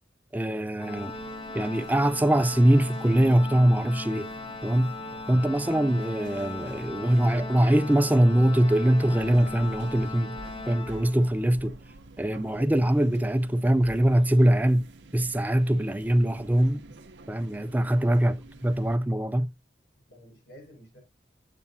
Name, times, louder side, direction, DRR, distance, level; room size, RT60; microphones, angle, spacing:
voice 1, 0.3-1.1 1.5-4.3 4.6-4.9 5.3-10.4 10.7-11.8 12.2-14.9 15.1-16.8 17.3-18.4 18.6-19.5, right 1 dB, 10° right, 0.4 m, -22 dB
Organ, 0.8-11.5, left 3 dB, 30° left, 0.9 m, -39 dB
sound 1, 1.0-19.0, right 2 dB, 85° right, 0.8 m, -48 dB
voice 2, 20.1-21.0, equal, 70° left, 5.6 m, -51 dB
8.7 x 8.3 x 2.6 m
head